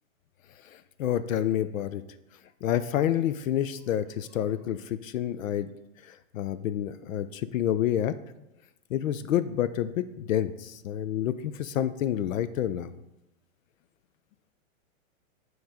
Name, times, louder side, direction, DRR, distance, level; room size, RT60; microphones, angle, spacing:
voice 1, 0.7-2.0 2.6-5.7 6.0-8.1 8.9-12.9, left 11 dB, 75° left, 13 dB, 0.5 m, -28 dB
9.4 x 3.1 x 5.0 m, 0.93 s
hypercardioid pair, 170°, 41 cm